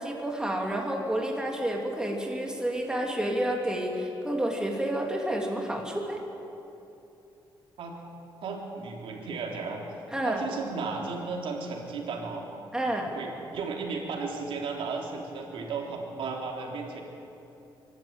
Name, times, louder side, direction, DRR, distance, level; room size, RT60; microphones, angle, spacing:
voice 1, 0.0-6.2 10.1-10.4 12.7-13.1, right 1 dB, 10° right, 0 dB, 3.1 m, -30 dB
voice 2, 8.4-9.8 10.2-12.5 13.1-17.0, right 4 dB, 80° right, 0 dB, 3.6 m, -34 dB
24.5 x 12.5 x 9.0 m, 2.9 s
cardioid pair, 105°, 9 cm